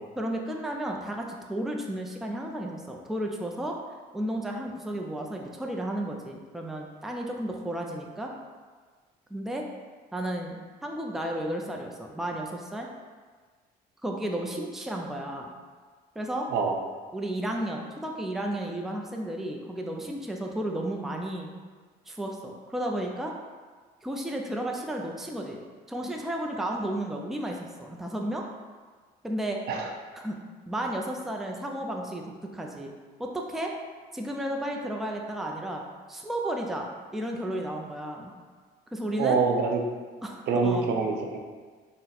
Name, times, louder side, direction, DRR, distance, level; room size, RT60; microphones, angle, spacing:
voice 1, 0.2-3.8 4.1-8.3 9.3-9.6 10.1-12.9 14.0-15.5 16.2-16.5 17.1-21.5 22.1-23.3 24.0-25.6 25.9-28.5 29.2-29.6 30.1-30.4 30.7-32.9 33.2-33.7 34.1-35.8 36.1-38.3 38.9-39.4 40.2-40.9, right 1 dB, ahead, 1 dB, 0.4 m, -33 dB
voice 2, 39.2-39.8 40.5-41.4, right 4 dB, 75° right, 2 dB, 0.6 m, -25 dB
3.8 x 2.1 x 4.2 m, 1.5 s
cardioid pair, 110°, 17 cm